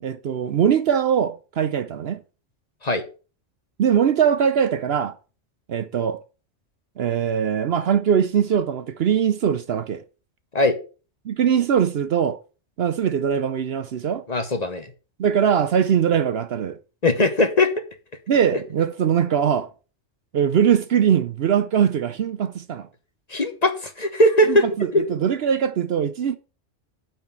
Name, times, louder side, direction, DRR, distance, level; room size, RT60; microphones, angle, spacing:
voice 1, 0.0-2.2 3.8-5.1 5.7-6.2 7.0-10.0 11.3-12.4 12.8-14.2 15.2-16.8 18.3-19.7 20.3-22.9 24.5-26.4, right 8 dB, 60° right, 0.8 m, -21 dB
voice 2, 14.3-14.9 17.0-17.7 23.3-24.6 24.9-25.1, left 1 dB, 35° left, 1.1 m, -19 dB
9.0 x 4.3 x 7.2 m
omnidirectional pair, 1.3 m